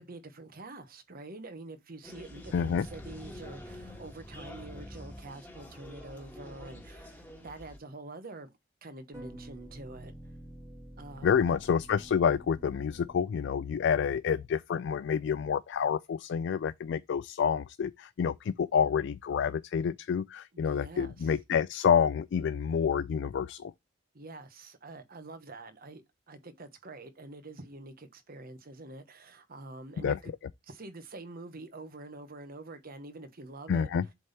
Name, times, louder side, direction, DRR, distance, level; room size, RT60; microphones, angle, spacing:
voice 1, 0.0-8.5 8.8-10.1 11.0-11.6 20.5-21.4 24.1-26.0 26.3-30.3 30.6-33.9, right 2 dB, 50° right, 1.2 m, -46 dB
sound 1, 2.0-7.8, left 1 dB, 10° left, 1.6 m, -48 dB
sound 2, 2.4-5.6 9.1-13.7, equal, 15° right, 1.8 m, -48 dB
voice 2, 2.5-2.9 11.2-23.7 30.0-30.2 33.7-34.0, left 7 dB, 60° left, 0.3 m, -28 dB
7.7 x 3.5 x 4.1 m
head